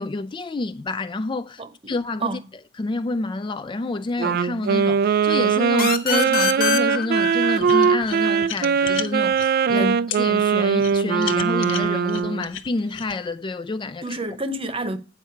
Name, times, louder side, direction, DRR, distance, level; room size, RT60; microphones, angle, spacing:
voice 1, 0.0-2.4 2.8-14.2, left 2 dB, 25° left, 0.3 m, -28 dB
voice 2, 1.6-1.9 2.2-2.5 9.7-10.1 14.0-15.0, right 2 dB, 30° right, 0.9 m, -29 dB
Wind instrument woodwind instrument, 4.2-12.5, right 6 dB, 50° right, 0.3 m, -21 dB
sound 1, 5.8-9.2, left 8 dB, 50° left, 1.2 m, -26 dB
sound 2, 7.6-9.5 10.1-10.2 10.8-13.2, left 10 dB, 70° left, 0.7 m, -33 dB
8.8 x 5.5 x 4.5 m
head